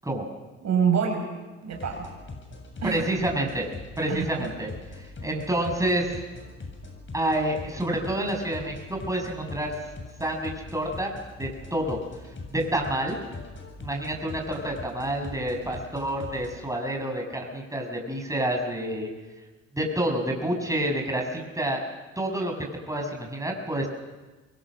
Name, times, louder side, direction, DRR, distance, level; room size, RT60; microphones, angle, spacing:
voice 1, 0.6-1.3 1.6-2.1 2.8-3.0 4.1-4.5, right 7 dB, 50° right, 3 dB, 6.3 m, -26 dB
sound 1, 1.7-16.6, left 3 dB, 35° left, 7.7 m, -42 dB
voice 2, 2.8-3.7 4.0-4.7 5.2-6.2 7.1-9.7 10.2-11.1 11.4-12.0 12.5-13.2 13.8-19.1 19.7-21.8 22.2-22.5 22.9-23.9, right 1 dB, 10° right, 1 dB, 6.9 m, -28 dB
27.5 x 23.5 x 6.5 m, 1.2 s
hypercardioid pair, 50°, 35 cm